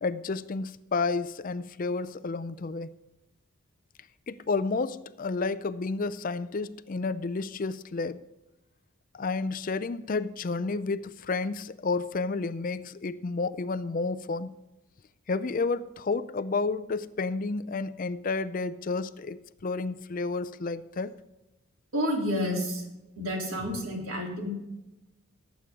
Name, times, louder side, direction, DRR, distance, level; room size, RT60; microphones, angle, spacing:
voice 1, 0.0-2.9 4.3-8.2 9.1-14.6 15.3-21.2, left 3 dB, 40° left, 14 dB, 0.4 m, -31 dB
voice 2, 21.9-22.8 23.2-24.5, equal, 80° right, -1 dB, 3.4 m, -30 dB
18.5 x 8.4 x 3.7 m, 0.98 s
head